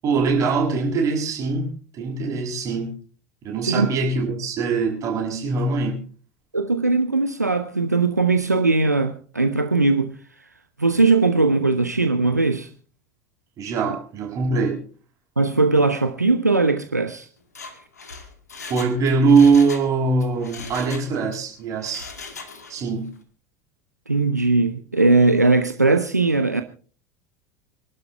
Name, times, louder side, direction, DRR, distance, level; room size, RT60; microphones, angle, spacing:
voice 1, 0.0-3.0 3.4-6.1 13.6-14.8 18.6-22.1 22.7-23.1, right 4 dB, 40° right, 7.1 m, -22 dB
voice 2, 6.5-10.1 10.8-12.7 15.4-17.3 24.1-26.6, right 3 dB, 85° right, 0.9 m, -19 dB
Mechanisms, 17.4-19.9 20.2-21.4 21.8-22.9 23.2-23.3, left 4 dB, 75° left, 2.3 m, -39 dB
26.5 x 12.0 x 3.4 m
figure-of-eight pair, 75°, 9 cm